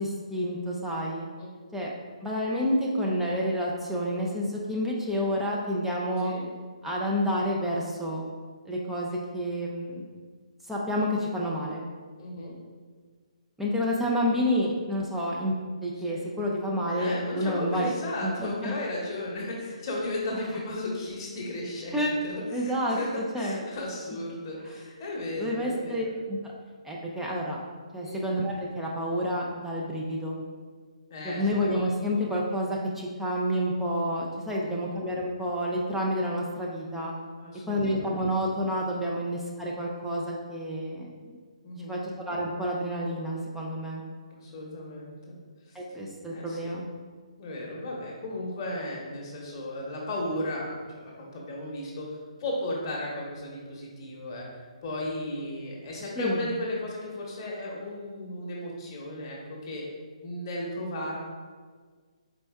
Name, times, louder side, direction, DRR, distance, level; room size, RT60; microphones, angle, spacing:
voice 1, 0.0-1.3 1.7-1.9 2.2-6.3 6.8-8.2 8.7-10.0 10.7-11.9 13.6-15.5 15.8-17.9 18.2-18.7 21.9-22.1 22.5-23.0 23.3-23.6 25.4-26.5 26.8-27.6 27.9-30.4 31.2-37.1 37.7-41.4 41.8-44.0 45.7-46.9 56.2-56.5, equal, 5° right, -4 dB, 0.4 m, -29 dB
voice 2, 12.1-12.5 16.0-16.3 16.9-26.2 28.0-28.3 31.1-32.1 34.5-34.8 37.4-38.2 41.6-42.0 44.3-45.4 45.7-45.8 46.3-46.7 47.4-59.9 60.2-61.2, left 1 dB, 35° left, -3 dB, 0.9 m, -35 dB
4.3 x 4.1 x 2.3 m, 1.5 s
figure-of-eight pair, 140°, 4 cm